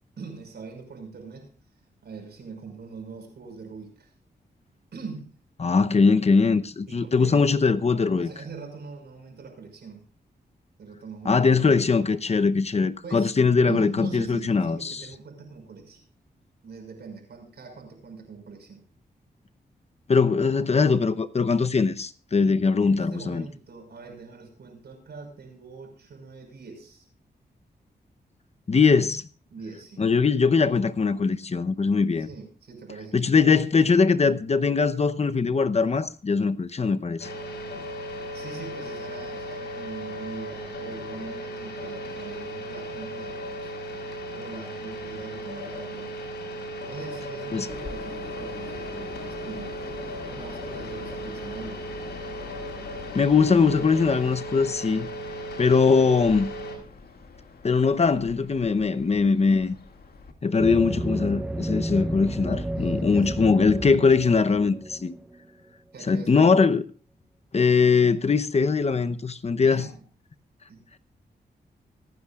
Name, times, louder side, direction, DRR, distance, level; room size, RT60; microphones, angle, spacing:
voice 1, 0.2-1.5 2.0-4.1 4.9-5.3 6.9-7.5 8.2-10.0 10.8-11.9 13.0-13.3 13.6-16.0 16.6-18.8 22.8-27.1 29.5-30.1 32.2-33.2 38.3-44.1 44.3-46.2 46.9-50.0 50.3-51.9 62.8-63.9 65.9-66.7 69.6-70.0 70.7-70.8, right 5 dB, 75° right, 5.7 m, -42 dB
voice 2, 5.6-8.3 11.3-15.0 20.1-23.4 28.7-29.2 30.0-32.3 33.1-37.3 47.5-47.7 53.1-55.1 55.6-56.5 57.6-59.8 60.4-65.2 66.1-66.8 67.5-69.9, left 4 dB, 40° left, 0.8 m, -21 dB
sound 1, 37.2-56.8, equal, 90° left, 4.9 m, -36 dB
Train, 47.7-60.3, left 4 dB, 65° left, 2.2 m, -44 dB
sound 2, 60.6-65.4, right 1 dB, 10° right, 0.8 m, -31 dB
25.0 x 9.8 x 2.4 m
cardioid pair, 80°, 17 cm